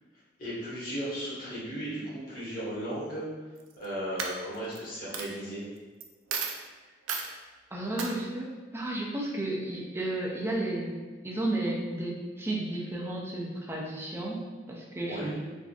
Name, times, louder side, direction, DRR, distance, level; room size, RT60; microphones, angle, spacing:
voice 1, 0.4-3.2 3.8-5.6 15.1-15.4, equal, 45° left, -9 dB, 1.2 m, -35 dB
Coin (dropping), 3.6-3.8 4.2-4.8 5.1-5.3 6.0-6.1 6.3-6.6 7.1-7.3 8.0-8.1, right 6 dB, 80° right, 0.4 m, -33 dB
voice 2, 7.7-15.4, right 1 dB, 10° right, -2 dB, 0.4 m, -33 dB
3.5 x 2.5 x 2.3 m, 1.3 s
head